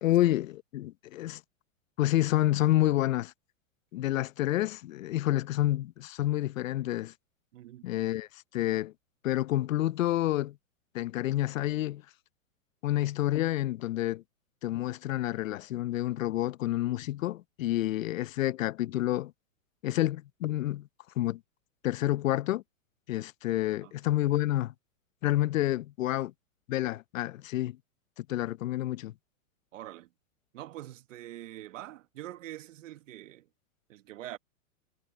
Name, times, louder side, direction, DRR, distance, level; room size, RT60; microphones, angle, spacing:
voice 1, 0.0-1.4 2.0-3.3 3.9-7.1 7.8-8.9 9.2-10.6 10.9-12.0 12.8-14.2 14.6-19.3 19.8-20.9 21.2-21.4 21.8-22.6 23.1-24.7 25.2-26.3 26.7-27.8 28.2-29.1, left 14 dB, 70° left, 0.8 m, -29 dB
voice 2, 7.5-7.9 23.8-23.9 29.7-30.1 30.5-33.5 33.9-34.4, right 14 dB, 65° right, 1.7 m, -44 dB
hypercardioid pair, 145°, 41 cm